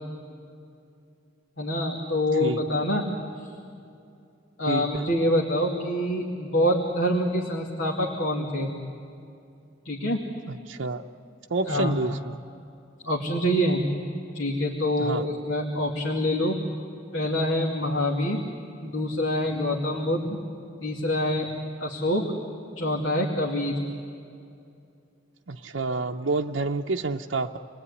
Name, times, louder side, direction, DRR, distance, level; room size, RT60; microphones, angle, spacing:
voice 1, 1.6-3.1 4.6-8.7 9.8-10.2 11.7-12.0 13.0-13.8 14.3-16.6 17.1-18.4 18.8-20.4 20.8-21.5 21.8-22.2 22.8-23.8, left 1 dB, 80° left, -1 dB, 2.5 m, -25 dB
voice 2, 4.7-5.1 10.5-11.0 11.5-12.4 15.0-15.2 25.5-27.6, right 3 dB, 80° right, 2 dB, 0.7 m, -28 dB
28.5 x 20.0 x 9.8 m, 2.5 s
head